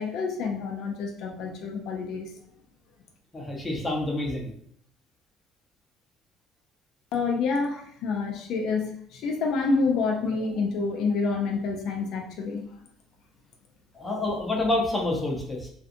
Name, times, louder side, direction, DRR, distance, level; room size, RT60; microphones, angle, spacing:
voice 1, 0.0-2.4 7.1-12.6, left 4 dB, 70° left, 2 dB, 0.4 m, -28 dB
voice 2, 3.3-4.5 13.9-15.7, left 2 dB, 20° left, 0 dB, 0.7 m, -28 dB
2.6 x 2.3 x 2.5 m, 0.65 s
supercardioid pair, 95°, 0 cm